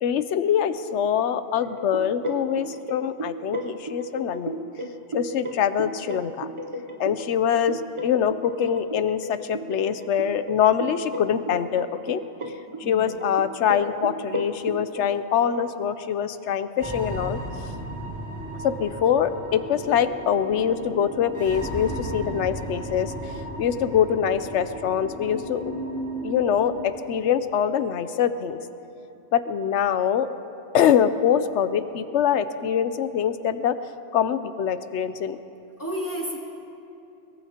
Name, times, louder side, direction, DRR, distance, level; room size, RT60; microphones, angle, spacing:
voice 1, 0.0-4.6 5.1-6.5 7.0-12.2 12.8-17.7 18.6-25.7 26.2-28.6 29.3-30.3 30.7-33.8 34.1-35.4, left 8 dB, 80° left, 12 dB, 1.0 m, -24 dB
sound 1, 1.6-15.2, right 1 dB, 35° right, 0.7 m, -35 dB
voice 2, 12.8-13.1 35.8-36.4, equal, 15° left, -6 dB, 2.8 m, -31 dB
sound 2, 16.8-26.8, right 1 dB, 10° right, 3.8 m, -35 dB
22.5 x 21.5 x 2.9 m, 2.8 s
omnidirectional pair, 1.2 m